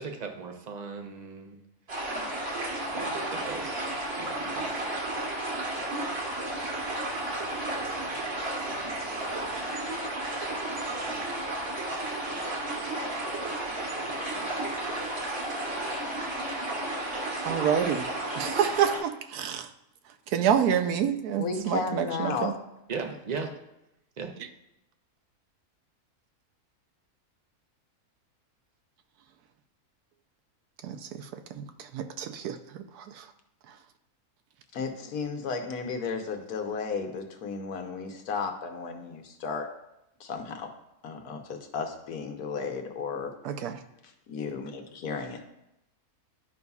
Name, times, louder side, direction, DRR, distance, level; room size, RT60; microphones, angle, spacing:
voice 1, 0.0-1.6 2.9-4.7 22.9-23.5 24.2-24.3, right 5 dB, 45° right, 4 dB, 0.6 m, -38 dB
sound 1, 1.9-19.0, right 1 dB, 70° right, 2.0 m, -32 dB
voice 2, 17.4-18.0 18.4-19.7 20.3-22.5 30.8-31.2 31.6-31.7 31.9-32.6 33.2-33.3 43.4-43.8, right 8 dB, 85° right, 8 dB, 1.1 m, -27 dB
voice 3, 21.4-22.5 34.7-39.7 40.2-40.7 41.0-43.3 44.0-45.4, left 5 dB, 80° left, 5 dB, 1.4 m, -34 dB
11.5 x 5.4 x 2.3 m, 0.86 s
omnidirectional pair, 1.6 m